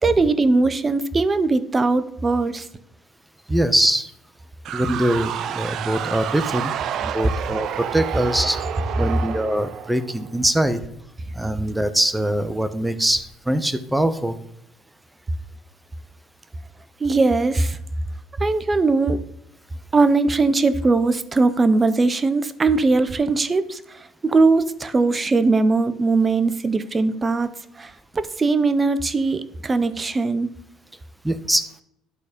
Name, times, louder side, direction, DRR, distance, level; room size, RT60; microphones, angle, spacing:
voice 1, 0.0-2.7 17.0-17.8 18.4-19.2 19.9-27.5 27.8-30.5, right 3 dB, 30° right, 13 dB, 0.8 m, -20 dB
voice 2, 3.5-4.1 4.7-6.7 7.0-8.6 9.0-10.8 11.3-14.4 31.2-31.7, right 1 dB, 5° right, 11 dB, 1.0 m, -22 dB
sound 1, 4.6-10.4, right 9 dB, 60° right, 0.5 m, -29 dB
11.0 x 4.1 x 5.1 m, 0.76 s
hypercardioid pair, 70°, 0 cm